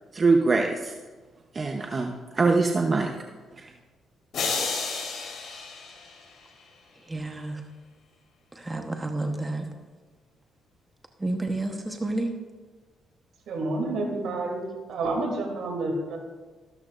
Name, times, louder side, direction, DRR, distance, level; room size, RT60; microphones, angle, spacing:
voice 1, 0.1-0.9 1.5-3.1, right 3 dB, 35° right, 2 dB, 0.9 m, -23 dB
sound 1, 4.3-6.7, left 4 dB, 65° left, 3.2 m, -32 dB
voice 2, 7.1-7.6 8.5-9.6 11.2-12.3, right 2 dB, 15° right, 4 dB, 1.1 m, -30 dB
voice 3, 13.5-14.6 14.9-16.2, right 2 dB, 70° right, 1 dB, 2.9 m, -29 dB
13.5 x 13.0 x 2.5 m, 1.4 s
cardioid pair, 90°, 0 cm